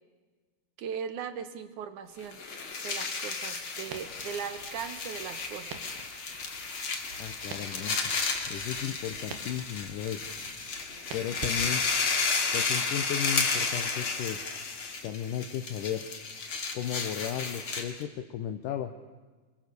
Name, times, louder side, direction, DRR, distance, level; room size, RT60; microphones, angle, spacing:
voice 1, 0.8-2.4 2.8-5.7, right 7 dB, 65° right, 11 dB, 2.2 m, -38 dB
sound 1, 2.2-18.0, left 4 dB, 40° left, 2.7 m, -33 dB
Crackle, 3.9-12.2, right 6 dB, 85° right, 3.6 m, -47 dB
voice 2, 7.2-8.2 8.5-10.2 11.1-11.8 12.5-14.4 15.0-16.0 16.7-18.9, left 10 dB, 70° left, 7 dB, 2.4 m, -35 dB
26.0 x 22.5 x 6.9 m, 1.4 s
omnidirectional pair, 4.4 m